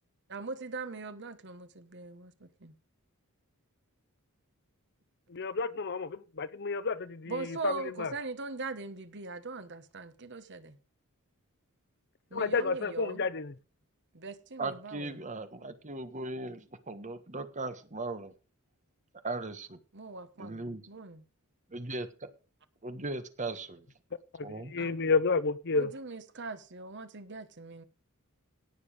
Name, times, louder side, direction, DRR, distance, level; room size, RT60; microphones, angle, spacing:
voice 1, 0.3-2.7 7.3-10.8 12.3-13.3 14.1-15.1 19.9-21.2 24.4-24.5 24.8-25.0 25.7-27.8, right 3 dB, 55° right, 1.2 m, -41 dB
voice 2, 5.3-7.7 8.0-8.1 12.3-13.5 24.7-25.9, left 4 dB, 50° left, 0.8 m, -30 dB
voice 3, 14.6-18.3 19.2-19.8 20.4-20.8 21.7-22.1 22.8-23.8 24.4-24.7, right 2 dB, 35° right, 1.5 m, -38 dB
17.5 x 7.0 x 5.1 m
head